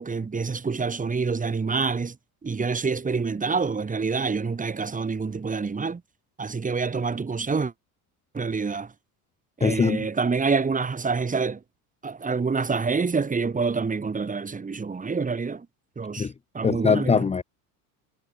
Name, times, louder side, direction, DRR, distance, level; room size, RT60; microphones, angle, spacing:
voice 1, 0.0-2.2 2.4-6.0 6.4-7.7 8.3-8.9 9.6-11.6 12.0-15.7 16.0-16.3 16.5-17.3, right 4 dB, 20° right, 3.9 m, -27 dB
voice 2, 9.6-10.1 16.2-16.3 16.6-17.4, left 5 dB, 15° left, 1.0 m, -22 dB
supercardioid pair, 110°, 41 cm